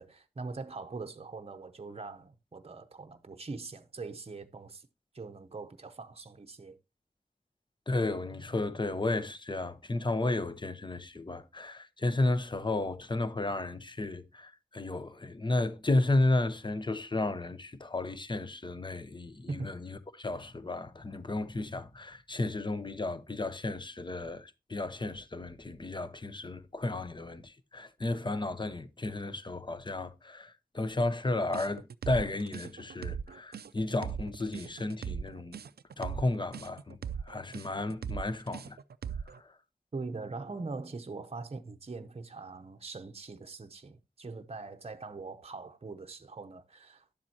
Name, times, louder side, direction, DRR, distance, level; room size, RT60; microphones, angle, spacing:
voice 1, 0.0-4.9 5.1-6.8 19.5-19.7 39.9-47.1, right 3 dB, 40° right, 0.7 m, -42 dB
voice 2, 7.9-35.6 36.0-37.0 37.3-38.8 39.3-39.5, left 2 dB, 30° left, 0.8 m, -33 dB
sound 1, 31.5-39.4, right 7 dB, 85° right, 0.4 m, -39 dB
11.0 x 7.4 x 2.8 m
wide cardioid pair, 60°, 16 cm